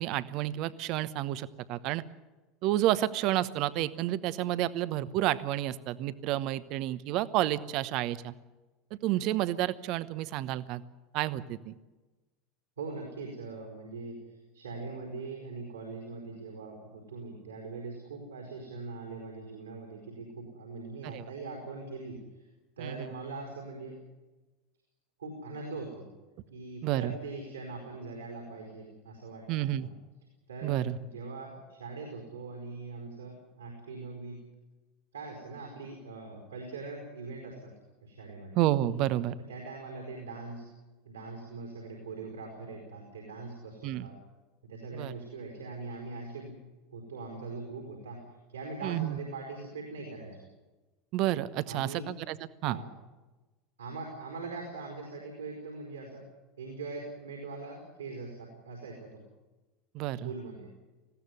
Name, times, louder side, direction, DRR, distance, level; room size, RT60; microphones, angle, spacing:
voice 1, 0.0-2.0 2.6-8.3 9.0-10.8 11.1-11.7 21.0-21.2 22.8-23.1 26.8-27.1 29.5-29.9 30.6-31.0 38.6-39.3 43.8-44.1 44.9-45.1 48.8-49.2 51.1-52.4 52.6-52.8 59.9-60.3, right 14 dB, 50° right, 16 dB, 1.0 m, -30 dB
voice 2, 12.8-22.5 22.8-24.0 25.2-26.1 26.5-29.9 30.5-34.4 35.1-37.7 38.0-38.6 39.5-40.6 41.0-44.2 44.7-46.5 46.9-48.2 48.5-50.5 51.7-52.1 52.6-52.9 53.8-56.2 56.6-59.2 60.2-60.7, right 3 dB, 80° right, 1 dB, 4.7 m, -42 dB
20.0 x 16.0 x 9.7 m, 1.2 s
figure-of-eight pair, 75°, 0 cm